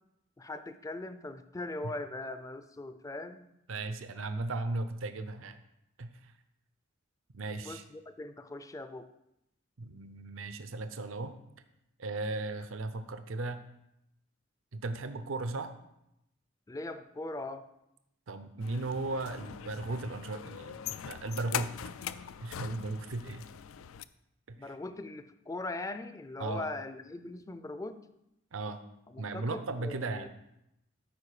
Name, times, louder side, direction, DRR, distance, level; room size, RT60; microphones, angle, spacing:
voice 1, 0.4-3.5 7.6-9.1 16.7-17.7 24.6-28.0 29.1-30.3, left 2 dB, 15° left, 10 dB, 0.4 m, -40 dB
voice 2, 3.7-5.6 6.0-6.1 7.3-7.8 9.8-11.4 12.0-13.6 14.7-15.7 18.3-21.7 22.4-23.4 24.5-24.7 26.4-26.7 28.5-28.8 29.2-30.3, right 2 dB, 75° right, 10 dB, 0.6 m, -36 dB
sound 1, 18.6-24.0, left 9 dB, 85° left, 0.4 m, -41 dB
13.5 x 4.8 x 4.9 m, 0.85 s
head